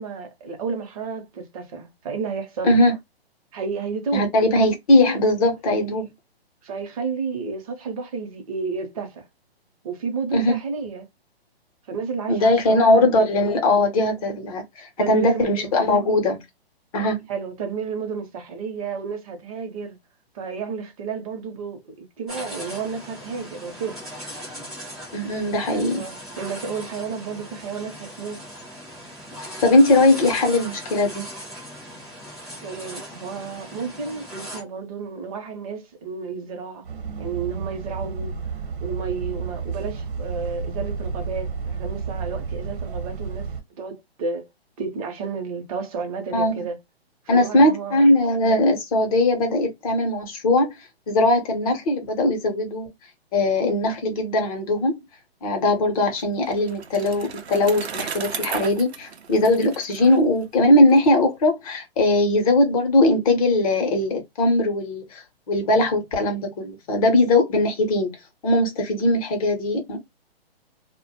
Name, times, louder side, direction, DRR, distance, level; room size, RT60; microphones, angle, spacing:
voice 1, 0.0-2.7 3.5-4.3 5.7-5.8 6.6-9.2 9.8-11.1 11.9-13.3 15.0-15.7 17.3-20.0 20.3-24.0 25.2-25.4 25.7-28.4 32.6-36.9 37.2-38.4 38.8-43.5 43.8-44.5 44.8-46.8 47.3-48.1, right 5 dB, 35° right, 0.7 m, -31 dB
voice 2, 4.1-6.0 10.3-10.6 12.3-16.4 16.9-17.2 25.1-26.0 29.6-31.2 46.3-46.6 47.3-50.7 51.1-52.9 53.3-55.0 55.4-68.1 68.4-70.0, left 1 dB, 35° left, 0.7 m, -20 dB
sound 1, 22.3-34.6, equal, ahead, 0.4 m, -38 dB
Bus, 36.8-43.6, right 5 dB, 55° right, 1.0 m, -31 dB
Bicycle, 55.9-61.0, right 7 dB, 85° right, 0.6 m, -35 dB
2.1 x 2.0 x 2.8 m
hypercardioid pair, 140°, 31 cm